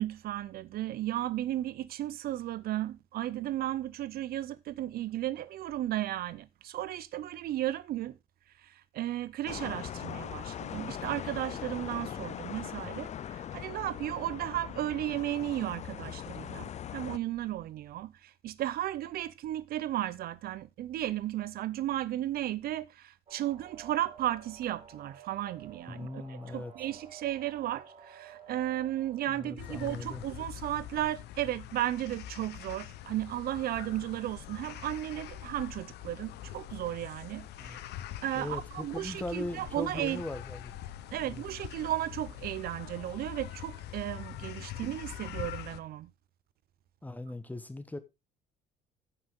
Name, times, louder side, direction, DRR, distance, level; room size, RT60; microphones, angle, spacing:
voice 1, 0.0-8.2 8.6-37.8 38.2-40.2 41.1-46.1, right 13 dB, 65° right, 0.6 m, -34 dB
sound 1, 9.5-17.2, left 10 dB, 45° left, 0.5 m, -40 dB
sound 2, 23.3-29.5, right 7 dB, 35° right, 2.8 m, -52 dB
voice 2, 25.9-26.7 29.3-30.2 37.6-37.8 38.3-40.7 41.2-41.4 44.3-44.5 47.0-48.0, left 1 dB, 10° left, 1.3 m, -39 dB
sound 3, 29.6-45.8, left 12 dB, 75° left, 0.9 m, -44 dB
15.0 x 5.9 x 3.6 m
cardioid pair, 110°, 17 cm